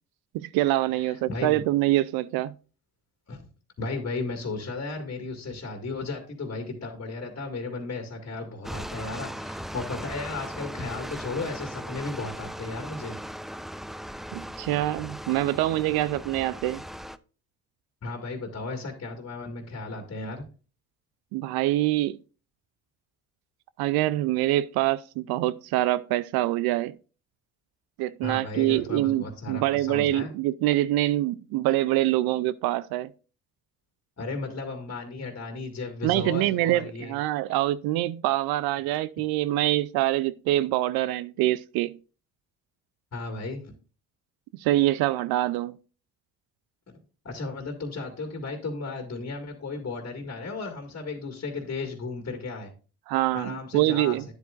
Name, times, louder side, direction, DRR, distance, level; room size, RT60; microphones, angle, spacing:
voice 1, 0.3-2.5 14.3-16.8 21.3-22.2 23.8-26.9 28.0-33.1 36.0-41.9 44.6-45.7 53.1-54.2, right 15 dB, 75° right, 0.5 m, -25 dB
voice 2, 1.0-1.7 3.3-3.4 3.8-13.2 18.0-20.4 28.2-30.3 34.2-37.2 43.1-43.7 46.9-47.0 47.2-52.7 53.3-54.2, left 3 dB, 40° left, 2.0 m, -35 dB
sound 1, 8.6-17.2, equal, ahead, 0.3 m, -38 dB
9.8 x 8.1 x 2.5 m
supercardioid pair, 65°, 37 cm